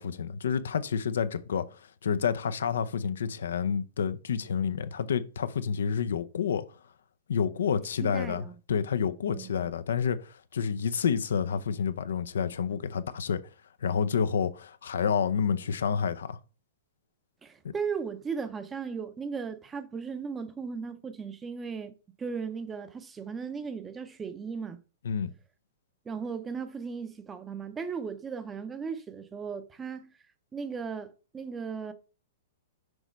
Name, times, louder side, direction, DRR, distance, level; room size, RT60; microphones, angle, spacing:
voice 1, 0.0-6.7 7.3-13.4 13.8-16.4 17.6-17.7 25.0-25.3, left 7 dB, 85° left, 0.6 m, -29 dB
voice 2, 8.0-8.6 9.3-9.6 17.4-21.9 22.2-24.8 26.1-30.1 30.5-31.9, right 5 dB, 15° right, 0.6 m, -36 dB
6.3 x 3.0 x 5.1 m
hypercardioid pair, 150°, 0 cm